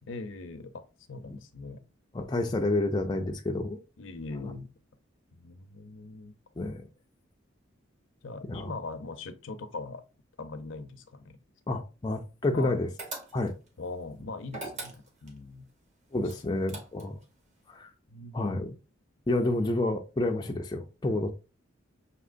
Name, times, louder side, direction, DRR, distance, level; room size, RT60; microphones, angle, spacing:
voice 1, 0.0-0.8 1.1-1.8 4.0-4.7 5.3-6.3 8.2-10.0 10.4-11.4 12.5-12.8 13.8-15.7 16.2-16.8 18.1-18.7, left 3 dB, 65° left, 0.6 m, -41 dB
voice 2, 2.1-3.8 4.4-4.5 6.6-6.8 8.5-8.7 11.7-12.9 13.3-13.5 16.1-17.2 17.7-17.9 18.3-18.7 19.3-21.3, left 2 dB, 20° left, 0.4 m, -29 dB
sound 1, 13.0-13.7 14.5-15.4 16.3-17.2, right 2 dB, 35° right, 1.0 m, -41 dB
6.1 x 2.8 x 2.5 m
head